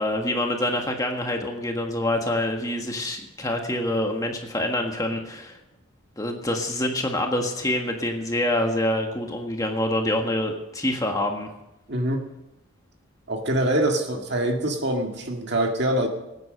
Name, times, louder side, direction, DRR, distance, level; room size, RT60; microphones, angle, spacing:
voice 1, 0.0-5.6 6.2-11.5, left 1 dB, 15° left, 2 dB, 1.5 m, -26 dB
voice 2, 11.9-12.2 13.3-16.1, right 1 dB, 55° right, 3 dB, 2.0 m, -24 dB
19.5 x 9.8 x 6.5 m, 0.92 s
head